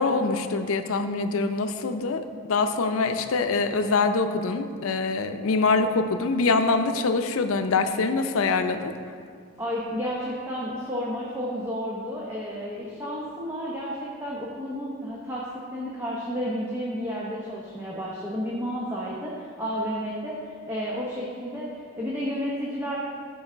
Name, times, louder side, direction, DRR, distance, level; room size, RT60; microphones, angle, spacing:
voice 1, 0.0-8.9, left 3 dB, 90° left, 9 dB, 0.5 m, -24 dB
voice 2, 9.6-20.4 20.7-21.7 22.0-23.0, equal, 10° right, -5 dB, 0.8 m, -31 dB
11.0 x 4.7 x 4.5 m, 2.2 s
head